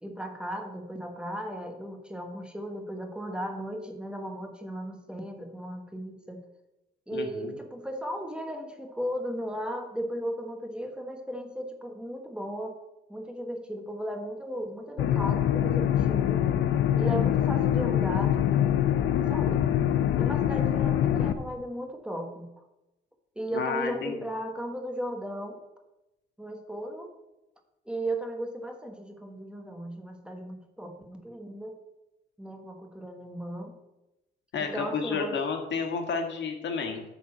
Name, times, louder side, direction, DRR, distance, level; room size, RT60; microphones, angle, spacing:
voice 1, 0.0-6.4 7.1-12.8 13.1-16.4 17.0-18.7 19.3-19.7 20.1-22.5 23.3-25.6 26.4-27.1 27.9-31.8 32.4-33.7 34.6-35.4, equal, 5° right, 4 dB, 1.3 m, -36 dB
voice 2, 7.1-7.5 23.5-24.2 34.5-37.0, left 5 dB, 65° left, 3 dB, 1.8 m, -31 dB
sound 1, 15.0-21.3, left 10 dB, 80° left, 0.7 m, -24 dB
10.5 x 4.2 x 7.5 m, 0.93 s
cardioid pair, 90°, 20 cm